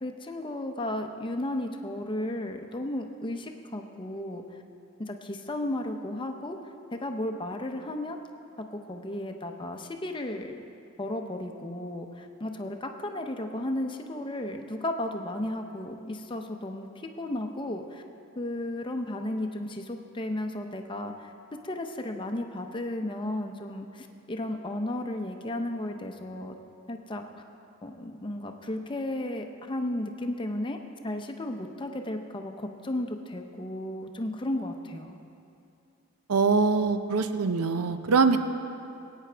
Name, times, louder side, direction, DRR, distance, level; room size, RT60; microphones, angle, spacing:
voice 1, 0.0-4.4 5.0-6.6 6.9-8.2 8.6-10.6 11.0-16.9 17.2-18.0 18.4-21.3 21.6-26.6 26.9-27.2 27.8-35.2, left 1 dB, 20° left, 5 dB, 0.6 m, -34 dB
voice 2, 36.3-38.4, right 4 dB, 90° right, 9 dB, 0.6 m, -23 dB
19.5 x 9.1 x 3.4 m, 2.6 s
head